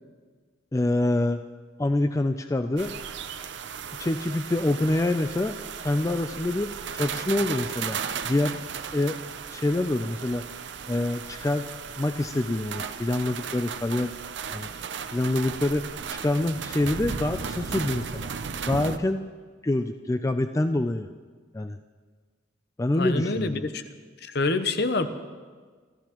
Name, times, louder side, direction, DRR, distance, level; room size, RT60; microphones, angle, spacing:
voice 1, 0.7-1.4 1.8-2.9 4.0-5.5 5.8-8.0 8.3-8.6 8.9-9.2 9.5-10.5 10.9-11.7 12.0-14.1 14.5-14.7 15.1-15.8 16.1-18.3 18.7-19.2 19.6-21.1 21.5-21.8 22.8-23.7, left 2 dB, 15° left, 8 dB, 0.3 m, -26 dB
sound 1, 2.8-19.0, right 6 dB, 65° right, 0.6 m, -35 dB
voice 2, 22.9-23.8 24.3-25.1, left 3 dB, 55° left, 10 dB, 0.8 m, -26 dB
28.0 x 13.5 x 3.0 m, 1.5 s
head